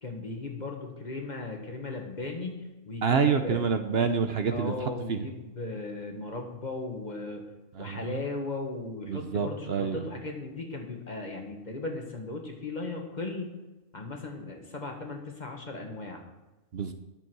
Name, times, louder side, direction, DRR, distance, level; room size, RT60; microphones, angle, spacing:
voice 1, 0.0-3.6 4.5-7.4 7.8-13.5 13.9-16.2, left 3 dB, 35° left, 2 dB, 1.7 m, -37 dB
voice 2, 3.0-4.7 5.1-5.2 7.8-8.2 9.1-10.0 16.7-16.9, right 6 dB, 55° right, 7 dB, 0.9 m, -27 dB
11.0 x 7.2 x 6.1 m, 1.1 s
omnidirectional pair, 1.3 m